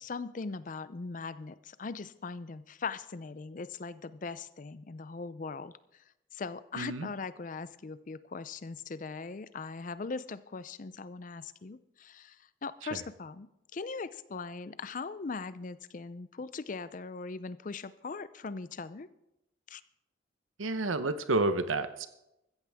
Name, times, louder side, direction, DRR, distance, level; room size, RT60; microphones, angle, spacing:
voice 1, 0.0-6.0 6.3-13.5 13.7-19.1 19.7-19.8, left 4 dB, 40° left, 15 dB, 0.5 m, -40 dB
voice 2, 6.7-7.1 12.9-13.0 20.6-22.1, right 2 dB, 85° right, 11 dB, 0.8 m, -30 dB
14.5 x 14.5 x 3.5 m, 0.88 s
head